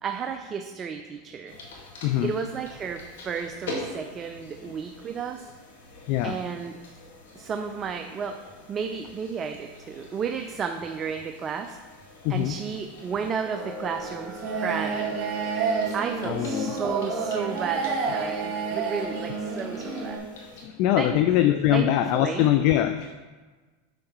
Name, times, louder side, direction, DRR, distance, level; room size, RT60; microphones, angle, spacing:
voice 1, 0.0-1.5 2.2-5.4 6.2-6.8 7.4-8.4 8.7-11.8 12.3-15.2 15.9-20.2 21.0-21.2 21.7-22.5, right 6 dB, 30° right, 5 dB, 0.4 m, -32 dB
sound 1, 1.5-20.6, left 2 dB, 80° left, 1.7 m, -45 dB
voice 2, 2.0-2.3 6.1-6.4 12.2-12.6 16.2-16.7 20.4-23.1, left 12 dB, 55° left, 8 dB, 0.3 m, -23 dB
sound 2, 13.5-20.2, right 4 dB, 45° right, 2.0 m, -29 dB
6.5 x 6.4 x 3.0 m, 1.3 s
hypercardioid pair, 110°, 0 cm